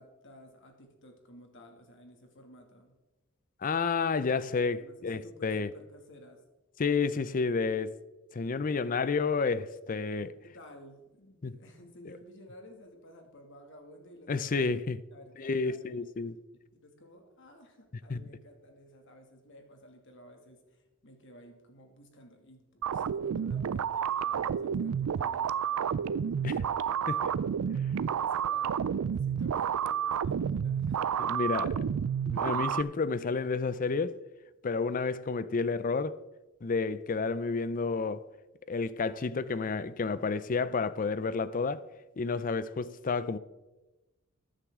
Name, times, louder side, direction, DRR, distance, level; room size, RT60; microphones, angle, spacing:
voice 1, 0.0-2.9 4.8-6.4 8.8-9.1 10.4-14.7 15.1-16.0 16.7-27.3 28.1-31.1, equal, 60° left, 2.2 m, -54 dB
voice 2, 3.6-5.7 6.8-7.9 8.3-10.3 11.4-11.6 14.3-15.0 15.4-16.3 18.1-18.3 26.4-26.6 27.1-27.3 31.2-31.8 32.3-34.2 34.6-36.2 36.6-38.2 38.7-41.8 42.2-43.4, left 4 dB, 40° left, 0.5 m, -30 dB
sound 1, 22.8-32.8, right 8 dB, 90° right, 0.4 m, -30 dB
14.5 x 10.0 x 3.7 m
head